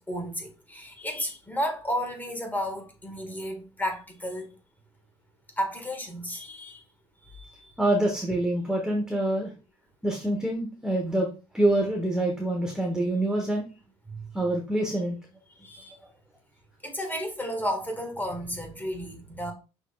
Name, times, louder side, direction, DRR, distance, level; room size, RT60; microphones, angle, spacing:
voice 1, 0.0-4.6 5.6-6.8 7.2-7.8 14.1-14.3 15.6-16.0 16.8-19.5, equal, 10° left, 1.7 m, -33 dB
voice 2, 7.8-9.5 10.0-11.3 11.5-13.6 14.3-15.2, right 1 dB, 5° right, 1.2 m, -26 dB
6.0 x 3.4 x 2.4 m
hypercardioid pair, 65°, 16 cm